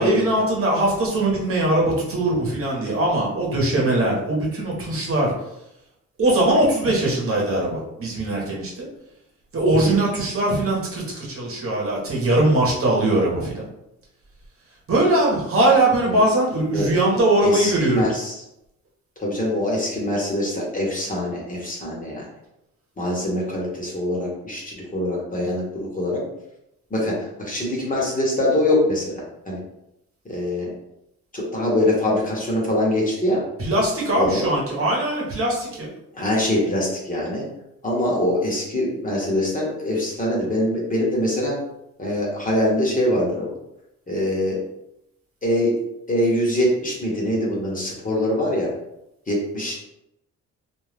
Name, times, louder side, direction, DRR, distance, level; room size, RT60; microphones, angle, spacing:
voice 1, 0.0-5.3 6.2-8.9 9.5-13.6 14.9-18.1 33.6-35.9, right 1 dB, 45° right, -4 dB, 1.1 m, -21 dB
voice 2, 17.1-18.4 19.2-22.3 23.0-26.2 26.9-29.6 30.2-30.7 31.3-33.4 34.1-34.4 36.1-37.4 37.8-41.5 42.0-43.5 44.1-44.6 45.4-45.7 46.1-48.7 49.3-49.7, left 1 dB, 25° left, -3 dB, 1.1 m, -23 dB
2.5 x 2.3 x 3.3 m, 0.85 s
cardioid pair, 90°, 30 cm